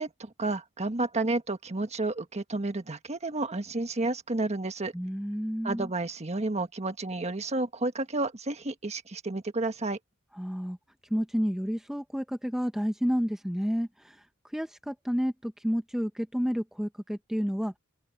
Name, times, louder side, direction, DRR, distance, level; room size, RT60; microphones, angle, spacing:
voice 1, 0.0-4.9 5.6-10.0, right 2 dB, 30° right, 1.4 m, -31 dB
voice 2, 4.9-5.9 10.3-10.8 11.1-14.2 14.5-17.8, equal, ahead, 0.7 m, -30 dB
open air
head